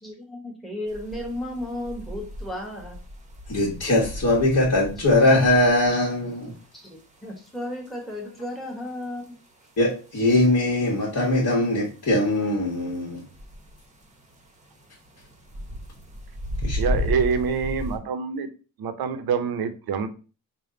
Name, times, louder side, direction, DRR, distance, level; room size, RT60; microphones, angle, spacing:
voice 1, 0.0-3.0 6.7-6.9 7.2-9.3, left 1 dB, ahead, 1.2 m, -34 dB
sound 1, 0.9-18.0, left 1 dB, 15° right, 0.9 m, -35 dB
voice 2, 3.5-6.5 9.8-13.2 16.6-16.8, left 1 dB, 45° left, 1.3 m, -21 dB
voice 3, 16.8-18.5 18.8-20.1, right 6 dB, 60° right, 0.7 m, -26 dB
3.4 x 2.2 x 3.8 m
cardioid pair, 80°, 41 cm